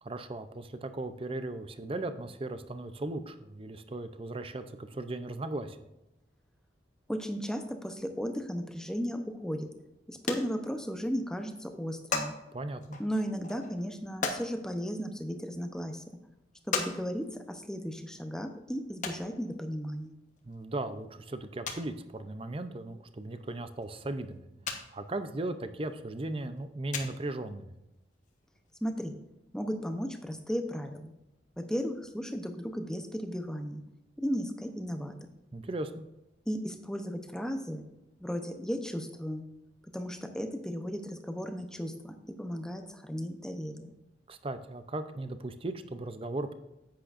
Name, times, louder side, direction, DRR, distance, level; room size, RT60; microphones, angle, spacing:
voice 1, 0.0-5.9 12.5-13.0 20.4-24.4 24.9-27.7 35.5-36.0 44.3-46.5, right 2 dB, 30° right, 10 dB, 0.6 m, -37 dB
voice 2, 7.1-9.7 10.1-12.3 13.0-16.2 16.7-20.2 28.8-29.2 29.5-31.1 31.6-33.8 34.2-35.2 36.5-37.8 38.2-39.4 39.9-43.9, equal, 5° left, 6 dB, 0.7 m, -35 dB
sound 1, 9.8-9.9 10.1-11.1 11.4-11.5 11.7-12.3 12.8-14.5 15.3-15.4 15.9-16.0 16.7-16.9 17.2-17.3 19.0-19.2 20.4-20.5 20.9-21.0 21.2-21.3 21.7-21.9 23.3-23.4 23.8-23.9 24.7-24.8 25.1-25.2 26.4-26.6 26.9-27.3 28.3-28.4 28.6-28.7 28.8-28.9, left 4 dB, 45° left, 1.1 m, -35 dB
10.0 x 8.7 x 2.6 m, 0.92 s
head